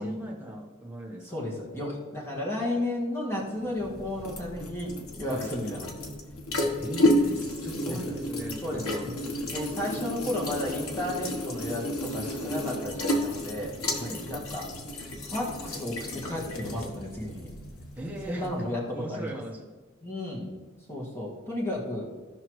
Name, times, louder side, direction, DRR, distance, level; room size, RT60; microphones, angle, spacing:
voice 1, 0.0-1.5 5.3-5.5 6.8-9.5 13.9-14.3 18.0-18.5 18.9-19.7, equal, 10° right, -1 dB, 1.2 m, -39 dB
voice 2, 1.2-5.9 6.6-6.8 7.8-8.2 8.6-9.1 9.4-13.8 14.3-14.7 15.2-17.5 18.3-19.4 20.0-20.5 20.9-22.1, left 1 dB, 10° left, -4 dB, 1.9 m, -33 dB
sound 1, 3.6-18.7, left 1 dB, 85° left, 1.2 m, -32 dB
15.5 x 5.7 x 3.1 m, 1.4 s
head